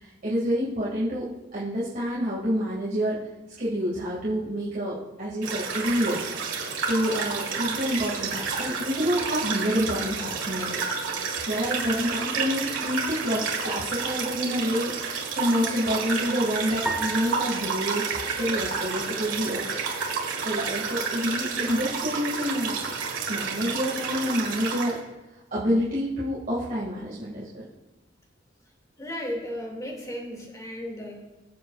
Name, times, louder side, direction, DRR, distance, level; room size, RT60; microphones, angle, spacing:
voice 1, 0.0-3.2 3.6-6.3 6.9-10.8 11.5-14.9 15.3-18.0 18.4-19.8 20.4-22.8 23.3-25.0 25.5-27.6, equal, 45° right, -8 dB, 2.4 m, -28 dB
sound 1, 5.4-25.0, right 5 dB, 80° right, 1.8 m, -30 dB
sound 2, 16.9-19.3, right 2 dB, 5° right, 0.6 m, -36 dB
voice 2, 29.0-31.1, equal, 20° left, -1 dB, 2.5 m, -34 dB
22.0 x 7.6 x 2.5 m, 1.0 s
head